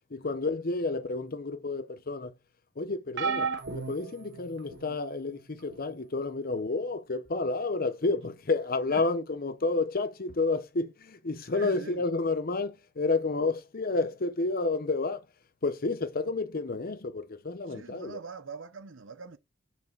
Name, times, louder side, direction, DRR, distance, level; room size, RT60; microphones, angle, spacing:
voice 1, 0.1-2.3 2.8-15.2 15.6-18.2, left 3 dB, 50° left, 0.7 m, -30 dB
sound 1, 3.2-5.0 5.7-6.0 7.3-7.4, right 5 dB, 60° right, 1.5 m, -34 dB
voice 2, 11.5-12.0 17.7-19.4, right 4 dB, 80° right, 0.9 m, -43 dB
5.6 x 4.6 x 6.0 m
head